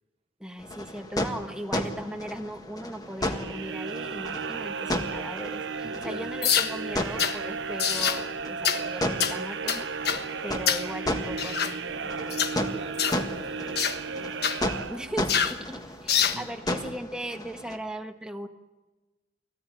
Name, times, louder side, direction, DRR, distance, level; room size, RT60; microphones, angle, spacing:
voice 1, 0.4-12.6 14.8-18.5, equal, 5° right, 5 dB, 1.4 m, -38 dB
sound 1, 0.6-17.8, left 1 dB, 20° left, 1.7 m, -35 dB
sound 2, 3.2-15.5, right 5 dB, 75° right, 0.7 m, -35 dB
voice 2, 5.8-6.3 12.7-14.5 16.3-16.5, right 2 dB, 35° right, 7 dB, 0.8 m, -44 dB
sound 3, 6.4-6.7 7.2-7.4 7.8-8.2 8.6-8.8 9.2-9.4 9.7-10.2 10.7-10.9 11.4-11.7 12.3-12.5 13.0-13.2 13.8-14.0 14.4-14.6 15.3-15.6 16.1-16.4, left 8 dB, 60° left, 1.3 m, -25 dB
24.5 x 17.0 x 9.0 m, 1.2 s
head